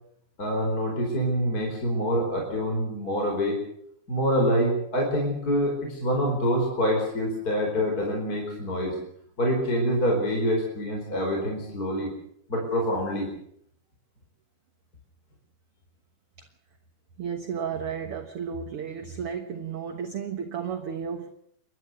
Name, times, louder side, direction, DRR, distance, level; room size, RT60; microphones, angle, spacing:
voice 1, 0.4-3.6 4.1-8.9 9.4-12.1 12.5-13.3, equal, 25° left, 0 dB, 4.7 m, -26 dB
voice 2, 17.2-21.3, right 7 dB, 60° right, 6 dB, 1.6 m, -33 dB
29.0 x 12.5 x 7.9 m, 0.70 s
omnidirectional pair, 4.3 m